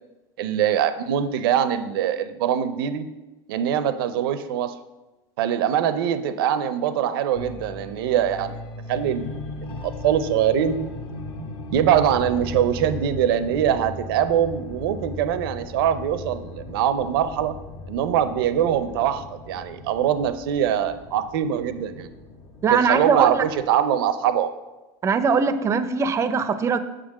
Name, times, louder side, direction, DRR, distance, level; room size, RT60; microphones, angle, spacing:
voice 1, 0.4-3.1 3.5-4.8 5.4-8.6 8.9-9.4 9.6-10.8 11.7-17.6 17.9-22.1 22.7-24.5, right 9 dB, 85° right, 11 dB, 0.6 m, -23 dB
sound 1, 7.4-23.7, left 2 dB, 40° left, 0.9 m, -37 dB
voice 2, 22.6-23.4 25.0-26.8, right 5 dB, 25° right, 11 dB, 0.5 m, -21 dB
6.7 x 3.8 x 6.3 m, 1.1 s
supercardioid pair, 125°, 12 cm